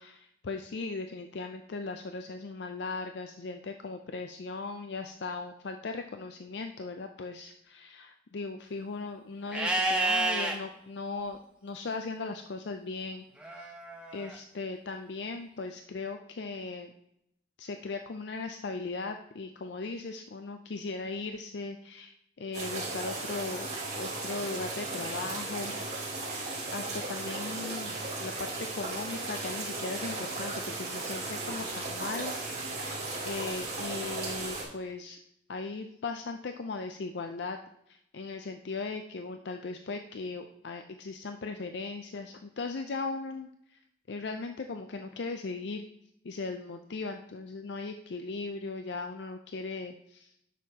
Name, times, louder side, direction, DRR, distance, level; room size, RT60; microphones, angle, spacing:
voice 1, 0.0-13.7 14.1-16.9 17.6-23.7 23.9-25.7 26.7-32.4 32.8-35.2 35.5-37.6 37.9-43.8 44.1-45.9 46.2-50.3, left 3 dB, 70° left, 6 dB, 0.5 m, -38 dB
Livestock farm animals working animals, 9.5-10.5 13.4-14.4, right 2 dB, 5° right, 0.8 m, -29 dB
sound 1, 22.5-34.6, right 3 dB, 35° right, 2.4 m, -36 dB
9.8 x 6.4 x 2.8 m, 0.75 s
head